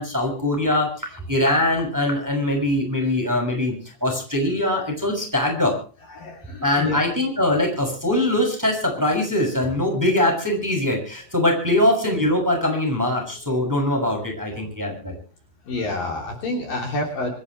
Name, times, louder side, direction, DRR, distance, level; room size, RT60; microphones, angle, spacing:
voice 1, 0.0-3.7 4.0-5.7 6.6-15.1, left 1 dB, 5° right, 1 dB, 6.6 m, -22 dB
voice 2, 6.2-7.0 15.7-17.3, left 2 dB, 50° left, 2 dB, 4.5 m, -28 dB
26.5 x 13.5 x 3.2 m, 0.38 s
omnidirectional pair, 5.3 m